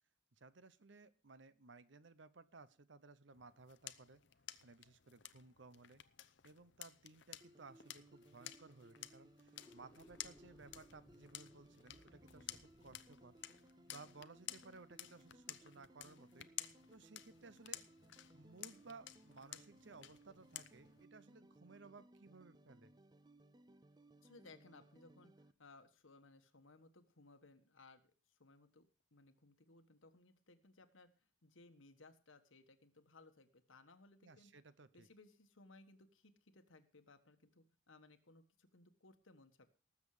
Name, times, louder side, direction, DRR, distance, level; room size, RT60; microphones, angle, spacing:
voice 1, 0.3-4.2 4.6-6.0 6.4-13.3 13.9-16.5 16.9-17.8 18.3-22.9 34.2-35.1, right 3 dB, 65° right, 15 dB, 0.8 m, -59 dB
sound 1, 3.3-21.0, left 13 dB, 65° left, 0.7 m, -54 dB
sound 2, 7.4-25.5, right 1 dB, 20° right, 0.5 m, -65 dB
sound 3, 9.5-14.8, left 1 dB, 15° left, 1.5 m, -67 dB
voice 2, 24.2-31.1 31.4-34.5 34.9-39.7, left 3 dB, 85° left, 8 dB, 1.5 m, -63 dB
19.0 x 7.4 x 4.9 m, 0.35 s
head